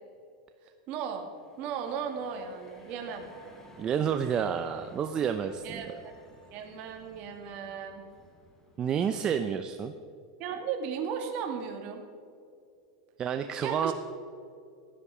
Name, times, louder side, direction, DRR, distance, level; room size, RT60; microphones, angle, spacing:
voice 1, 0.9-1.2 1.6-3.3 5.6-6.1 6.5-8.0 10.4-12.0 13.6-13.9, right 7 dB, 45° right, 4 dB, 2.3 m, -36 dB
sound 1, 1.1-9.8, left 1 dB, 15° left, 2.8 m, -55 dB
voice 2, 3.8-6.0 8.8-9.9 13.2-13.9, right 8 dB, 30° right, 8 dB, 0.6 m, -29 dB
16.0 x 11.0 x 5.0 m, 2.4 s
supercardioid pair, 130°, 3 cm